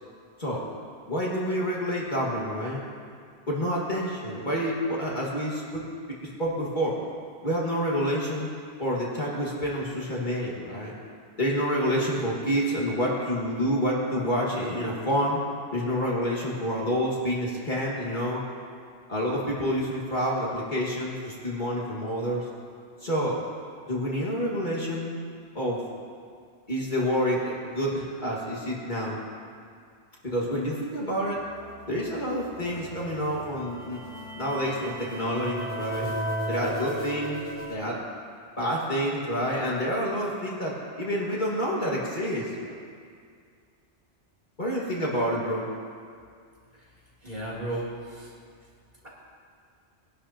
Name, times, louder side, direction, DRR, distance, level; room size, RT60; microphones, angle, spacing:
voice 1, 1.1-2.8 3.5-5.8 6.4-7.0 7.4-8.5 8.8-10.9 11.4-15.4 15.7-18.4 19.1-22.4 23.0-23.4 23.9-25.2 25.5-25.8 26.7-29.2 30.2-31.4 31.9-34.0 34.4-36.1 36.5-37.4 37.7-38.0 38.6-42.5 44.6-45.6, equal, 40° left, -5 dB, 2.0 m, -28 dB
sound 1, 31.2-37.7, equal, 20° left, 2.8 m, -36 dB
voice 2, 47.2-48.3, right 1 dB, 35° right, -7 dB, 3.3 m, -34 dB
20.5 x 11.5 x 2.9 m, 2.2 s
omnidirectional pair, 1.2 m